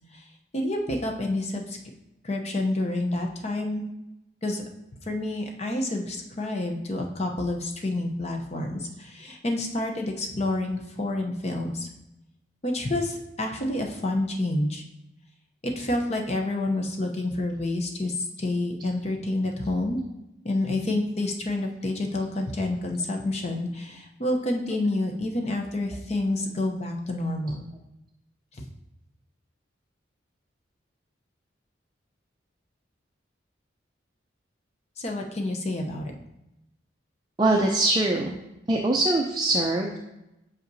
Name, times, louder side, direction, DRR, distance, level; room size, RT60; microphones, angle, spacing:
voice 1, 0.5-1.8 2.2-3.8 4.4-4.6 5.0-11.9 12.6-14.8 15.6-20.0 20.4-27.7 28.6-28.7 35.0-36.0, left 2 dB, 35° left, 3 dB, 0.7 m, -28 dB
voice 2, 37.4-38.4 38.7-40.0, right 2 dB, 20° right, 0 dB, 0.5 m, -23 dB
7.9 x 5.7 x 2.7 m, 0.91 s
head